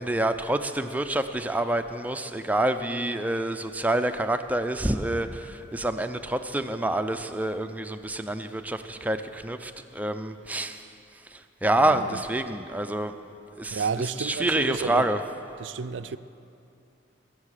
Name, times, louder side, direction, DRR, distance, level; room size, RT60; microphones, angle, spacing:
voice 1, 0.0-10.9 11.2-13.2 13.6-13.8 14.2-15.2, right 1 dB, 10° right, 0.5 m, -27 dB
voice 2, 11.8-12.2 13.7-15.1 15.6-16.2, right 5 dB, 80° right, 0.5 m, -31 dB
22.0 x 7.6 x 6.5 m
head